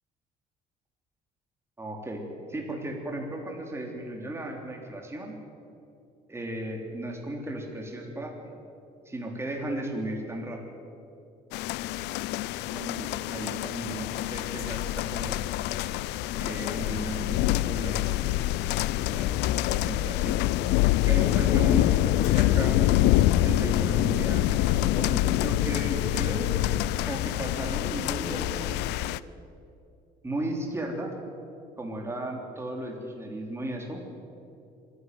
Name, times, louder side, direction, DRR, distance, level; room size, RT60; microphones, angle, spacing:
voice 1, 1.8-2.2 2.5-5.3 6.3-8.3 9.0-10.8 12.5-15.4 16.3-18.3 19.0-20.4 21.1-22.9 23.4-26.5 27.1-28.9 30.2-31.1 31.8-34.0, right 1 dB, 15° right, 1 dB, 3.4 m, -35 dB
sound 1, 11.5-29.2, left 14 dB, 90° left, 0.5 m, -26 dB
25.0 x 11.0 x 9.5 m, 2.6 s
cardioid pair, 110°, 17 cm